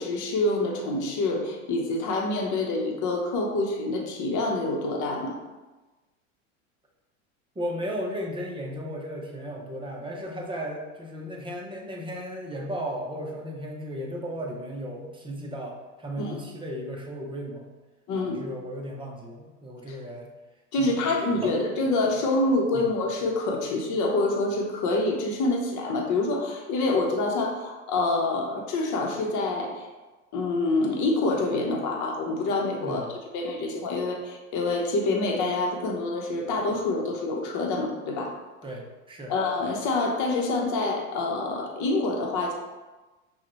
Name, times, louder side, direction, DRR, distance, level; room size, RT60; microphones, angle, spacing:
voice 1, 0.0-5.3 16.2-16.3 18.1-18.4 19.9-20.0 20.7-29.8 30.3-38.4 39.3-42.5, left 2 dB, 45° left, 1 dB, 1.0 m, -26 dB
voice 2, 7.5-17.7 18.1-20.3 20.7-21.5 22.7-22.9 32.8-33.1 38.6-39.3, equal, 10° right, -1 dB, 0.8 m, -35 dB
5.7 x 2.4 x 3.0 m, 1.2 s
hypercardioid pair, 85°, 40 cm